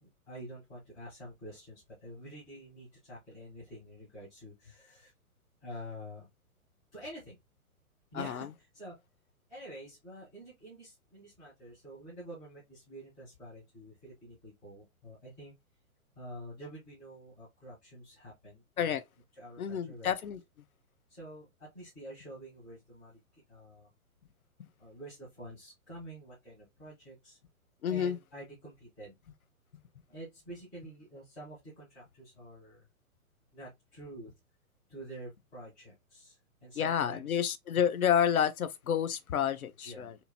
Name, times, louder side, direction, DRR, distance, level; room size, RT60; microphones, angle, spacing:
voice 1, 0.0-5.1 5.6-6.3 6.9-7.4 8.1-9.0 9.5-15.5 16.1-19.0 19.4-20.1 21.1-23.2 23.5-23.9 24.8-27.4 27.9-29.2 30.1-32.9 33.5-34.3 34.9-37.4 39.8-40.1, right 1 dB, ahead, 0.3 m, -48 dB
voice 2, 8.1-8.5 18.8-19.0 19.6-20.4 27.8-28.2 36.8-40.2, left 8 dB, 75° left, 0.7 m, -29 dB
4.3 x 2.6 x 2.7 m
hypercardioid pair, 125°, 43 cm